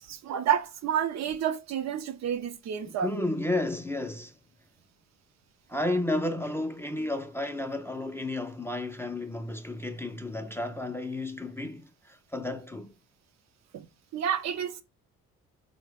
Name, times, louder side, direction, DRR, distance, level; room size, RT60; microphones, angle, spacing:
voice 1, 0.1-3.1 13.7-13.9 14.1-14.7, right 9 dB, 60° right, 0.6 m, -29 dB
voice 2, 2.8-4.4 5.7-12.9, left 2 dB, 10° left, 0.4 m, -32 dB
3.7 x 2.1 x 3.4 m
cardioid pair, 90°, 30 cm